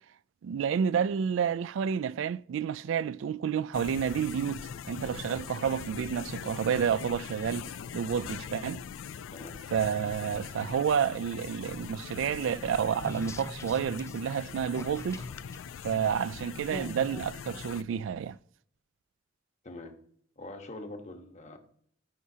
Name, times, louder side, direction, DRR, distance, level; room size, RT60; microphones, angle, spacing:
voice 1, 0.4-8.8 9.7-15.2 15.8-18.4, right 7 dB, 75° right, 0.3 m, -30 dB
sound 1, 3.7-17.8, left 7 dB, 85° left, 0.3 m, -42 dB
sound 2, 12.0-18.4, left 2 dB, 15° left, 0.5 m, -47 dB
voice 2, 20.4-21.6, left 2 dB, 40° left, 1.2 m, -43 dB
14.0 x 5.6 x 2.8 m
head